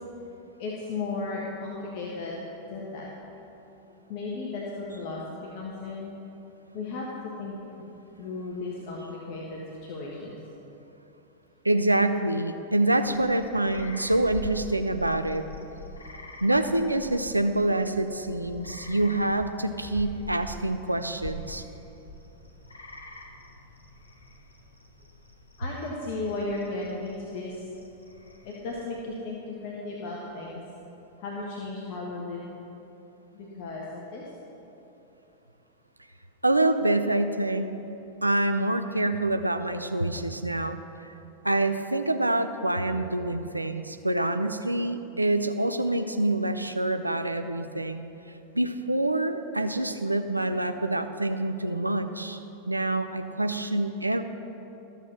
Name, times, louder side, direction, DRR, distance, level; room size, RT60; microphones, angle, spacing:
voice 1, 0.6-2.4 2.6-3.1 4.1-5.2 5.5-6.1 6.7-7.6 8.2-10.3 25.6-27.5 28.4-30.6 31.2-32.6 33.3-34.3, left 3 dB, 45° left, -4 dB, 1.5 m, -35 dB
voice 2, 11.6-15.4 16.4-21.6 36.4-37.7 38.2-40.8 41.4-48.0 48.5-52.4 52.7-54.2, right 1 dB, 85° right, 8 dB, 0.5 m, -26 dB
sound 1, 12.9-29.1, left 1 dB, 75° left, 1.1 m, -45 dB
14.0 x 7.0 x 6.0 m, 3.0 s
figure-of-eight pair, 90°, 0 cm